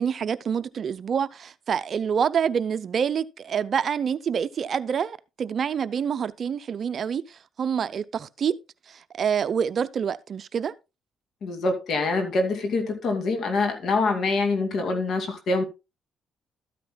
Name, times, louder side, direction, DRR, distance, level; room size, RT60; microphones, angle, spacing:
voice 1, 0.0-8.5 8.9-10.7, right 7 dB, 55° right, 0.6 m, -27 dB
voice 2, 11.4-15.6, left 3 dB, 65° left, 2.4 m, -25 dB
13.0 x 9.2 x 2.3 m
cardioid pair, 90°, 0 cm